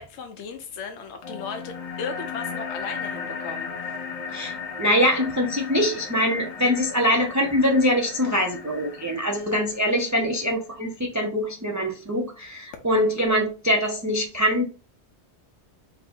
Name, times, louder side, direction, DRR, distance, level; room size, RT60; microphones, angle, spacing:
voice 1, 0.0-4.0, left 5 dB, 80° left, 0.9 m, -36 dB
sound 1, 1.2-10.2, left 5 dB, 40° left, 0.7 m, -36 dB
voice 2, 4.8-14.6, equal, 25° right, 0.4 m, -23 dB
4.0 x 2.7 x 4.2 m
omnidirectional pair, 1.2 m